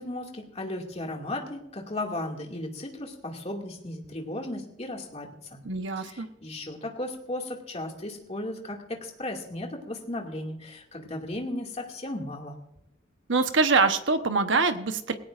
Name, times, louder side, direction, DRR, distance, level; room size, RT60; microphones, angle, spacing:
voice 1, 0.0-5.6 6.0-12.6, left 1 dB, 30° left, 1 dB, 2.3 m, -35 dB
voice 2, 5.6-6.3 13.3-15.1, right 4 dB, 70° right, 8 dB, 1.1 m, -24 dB
19.5 x 17.0 x 2.6 m, 0.84 s
head